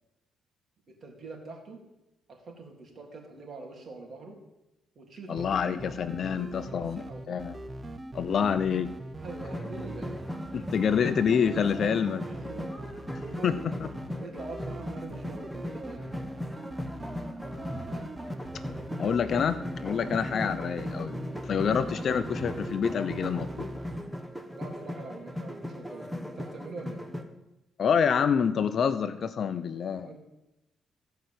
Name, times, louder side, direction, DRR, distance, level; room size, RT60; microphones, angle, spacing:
voice 1, 0.9-1.8 2.3-4.4 4.9-5.5 6.2-7.4 9.2-10.1 12.2-12.7 13.1-13.6 14.1-16.4 20.0-20.2 21.6-21.7 24.5-27.0 29.9-30.2, right 3 dB, 45° right, 1 dB, 3.4 m, -45 dB
voice 2, 5.3-7.6 8.1-8.9 10.5-12.2 13.4-13.5 13.8-13.9 19.0-23.7 27.8-30.2, left 7 dB, 55° left, 12 dB, 0.7 m, -27 dB
sound 1, 5.4-24.0, right 1 dB, 25° right, 0.8 m, -41 dB
sound 2, 9.2-27.2, left 1 dB, 5° right, 1.4 m, -38 dB
15.5 x 5.7 x 7.8 m, 0.94 s
cardioid pair, 90°, 0 cm